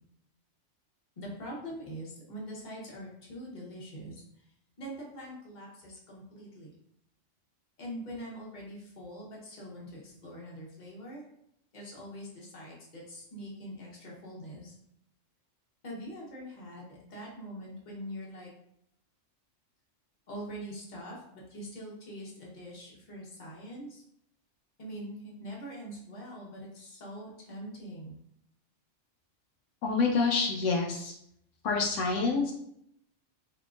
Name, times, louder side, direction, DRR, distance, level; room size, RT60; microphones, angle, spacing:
voice 1, 1.2-4.5 4.8-6.7 7.8-11.2 11.7-14.7 15.8-18.5 20.3-24.0 24.8-28.1, equal, 40° left, -4 dB, 1.0 m, -43 dB
voice 2, 29.8-31.1 31.6-32.5, left 4 dB, 80° left, 0 dB, 0.9 m, -27 dB
3.6 x 2.9 x 2.4 m, 0.74 s
omnidirectional pair, 1.3 m